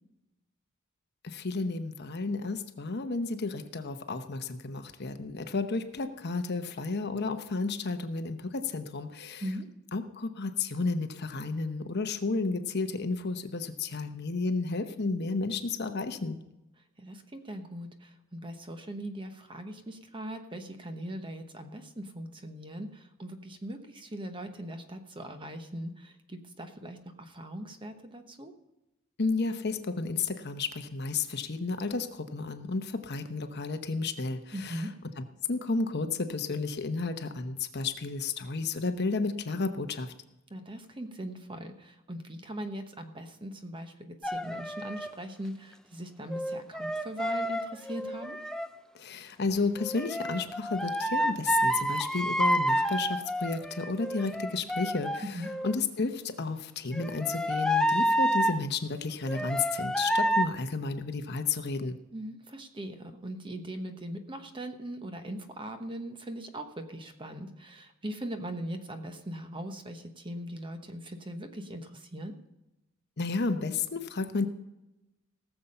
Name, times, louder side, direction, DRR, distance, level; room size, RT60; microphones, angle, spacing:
voice 1, 1.2-9.4 9.9-16.4 29.2-34.9 35.2-40.1 48.9-62.0 73.2-74.5, left 3 dB, 50° left, 8 dB, 0.9 m, -32 dB
voice 2, 17.0-28.5 34.5-34.9 40.5-48.4 55.2-55.5 62.1-72.3, right 1 dB, 25° right, 7 dB, 1.0 m, -40 dB
sound 1, 44.2-45.2 46.3-48.7 49.8-55.8 56.9-58.6 59.3-60.5, equal, 5° left, 0.4 m, -29 dB
18.0 x 7.1 x 5.5 m, 0.96 s
head